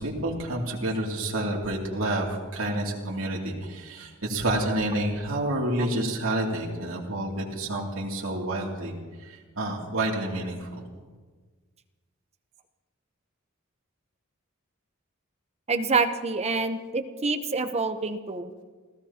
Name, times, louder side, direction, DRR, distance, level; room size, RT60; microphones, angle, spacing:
voice 1, 0.0-8.9 9.2-10.8, right 1 dB, 75° right, -2 dB, 2.7 m, -29 dB
voice 2, 15.7-18.5, right 4 dB, 30° right, 8 dB, 0.8 m, -27 dB
29.0 x 15.5 x 2.9 m, 1.4 s
head